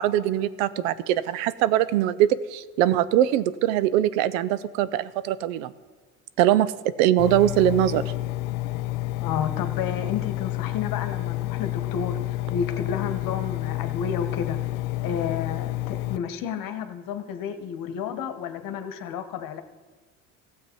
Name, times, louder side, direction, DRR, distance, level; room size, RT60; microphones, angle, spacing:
voice 1, 0.0-5.7 6.4-8.0, right 12 dB, 70° right, 16 dB, 0.6 m, -22 dB
Engine, 7.2-16.2, left 17 dB, 70° left, 0.5 m, -29 dB
voice 2, 9.2-14.6 15.0-19.6, left 7 dB, 55° left, 9 dB, 1.2 m, -31 dB
15.5 x 7.4 x 4.5 m, 1.4 s
hypercardioid pair, 70°, 41 cm